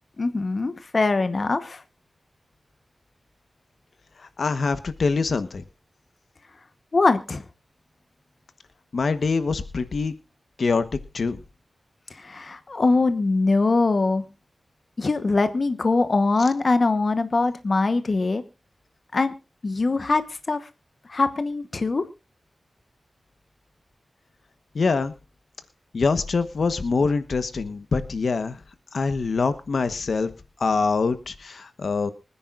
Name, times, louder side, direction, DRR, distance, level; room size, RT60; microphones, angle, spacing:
voice 1, 0.2-1.8 6.9-7.4 12.1-14.3 15.0-18.4 19.1-19.3 19.6-20.7 21.1-22.1, left 3 dB, 45° left, 10 dB, 1.1 m, -22 dB
voice 2, 4.4-5.6 8.9-10.1 10.6-10.8 11.1-11.4 24.7-25.1 25.9-28.6 28.9-30.3 30.6-32.1, left 4 dB, 70° left, 12 dB, 1.1 m, -24 dB
25.0 x 10.0 x 2.5 m, 0.28 s
wide cardioid pair, 95°, 0 cm